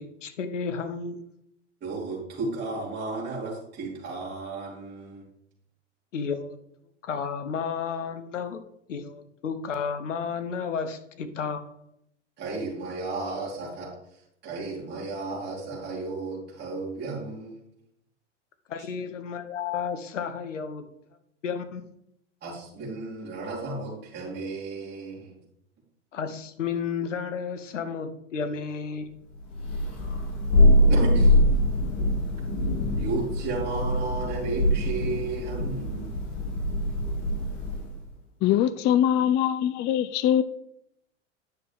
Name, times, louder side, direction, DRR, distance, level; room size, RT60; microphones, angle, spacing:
voice 1, 0.0-1.3 6.1-6.6 7.0-8.6 8.9-11.7 18.7-20.9 21.4-21.9 26.1-29.2, left 6 dB, 90° left, 10 dB, 1.1 m, -32 dB
voice 2, 1.8-5.2 12.4-13.9 14.4-17.6 22.4-25.4 30.9-31.4 33.0-36.1, right 3 dB, 30° right, -6 dB, 3.6 m, -33 dB
Thunder, 29.5-38.0, left 1 dB, 45° left, 2.5 m, -23 dB
voice 3, 38.4-40.4, left 10 dB, 30° left, 14 dB, 0.4 m, -22 dB
10.0 x 6.4 x 3.6 m, 0.75 s
hypercardioid pair, 105°, 36 cm